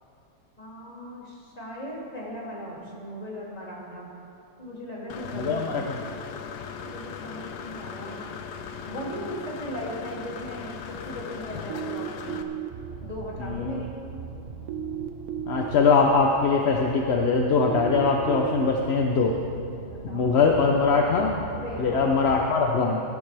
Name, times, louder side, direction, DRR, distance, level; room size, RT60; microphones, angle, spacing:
voice 1, 0.6-4.1 4.6-6.0 6.8-8.3 8.8-12.4 13.0-14.0 19.9-20.3 21.5-22.0, equal, 25° left, -5 dB, 2.7 m, -38 dB
Engine / Mechanisms, 5.1-12.4, left 6 dB, 85° left, 1.3 m, -38 dB
voice 2, 5.3-6.0 13.4-13.8 15.5-19.4 20.1-21.5 21.8-23.0, left 4 dB, 55° left, 1 dB, 0.8 m, -22 dB
sound 1, 11.7-12.7 14.7-15.7 17.7-18.7, right 10 dB, 70° right, 1.0 m, -33 dB
sound 2, 12.7-22.4, right 5 dB, 50° right, 0.9 m, -41 dB
17.5 x 12.0 x 3.4 m, 2.6 s
omnidirectional pair, 1.7 m